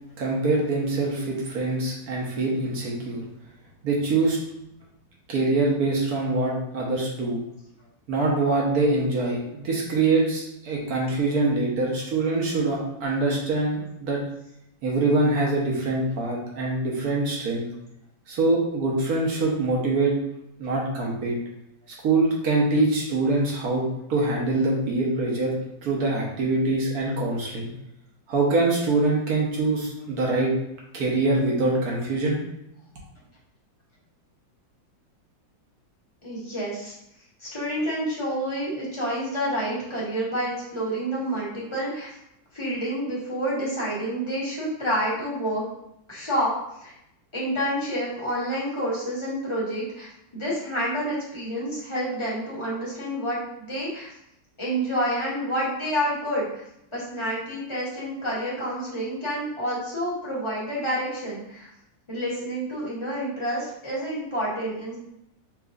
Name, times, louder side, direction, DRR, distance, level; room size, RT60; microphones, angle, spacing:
voice 1, 0.2-3.2 3.8-4.4 5.3-7.4 8.1-14.2 14.8-17.7 18.3-20.2 20.6-21.4 22.0-25.5 25.8-27.7 28.3-30.5 30.9-32.4, right 2 dB, 55° right, -2 dB, 1.5 m, -24 dB
voice 2, 36.2-36.9 37.4-42.2 42.5-45.6 46.1-46.5 46.8-46.9 47.3-54.1 54.6-56.6 56.9-61.7 62.1-65.0, equal, 20° left, -6 dB, 1.1 m, -28 dB
5.9 x 3.0 x 2.5 m, 0.80 s
omnidirectional pair, 2.1 m